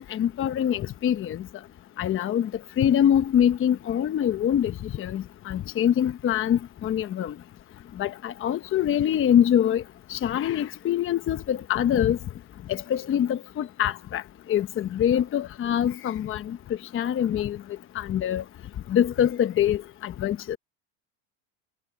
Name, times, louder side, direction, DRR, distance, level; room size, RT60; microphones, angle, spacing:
voice 1, 0.0-1.4 2.0-2.5 2.8-7.3 8.0-9.8 10.1-12.2 12.7-14.2 14.5-16.6 16.9-17.6 17.9-18.4 18.9-20.6, left 10 dB, 30° left, 1.0 m, -24 dB
supercardioid pair, 120°, 40 cm